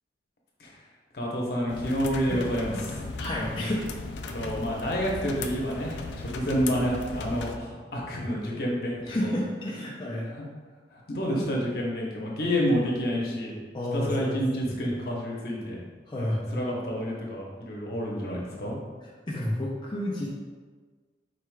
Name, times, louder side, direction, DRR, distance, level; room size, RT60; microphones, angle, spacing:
voice 1, 1.1-3.1 4.3-9.3 10.3-10.4 10.9-13.6 13.9-15.8 16.2-18.7, equal, 55° left, -3 dB, 0.9 m, -29 dB
sound 1, 1.7-7.6, left 3 dB, 85° left, 0.4 m, -37 dB
voice 2, 3.2-3.9 9.1-10.3 13.7-14.4 14.7-14.8 16.1-16.7 19.3-20.3, left 1 dB, 25° left, -5 dB, 0.5 m, -30 dB
4.7 x 4.6 x 2.3 m, 1.5 s
head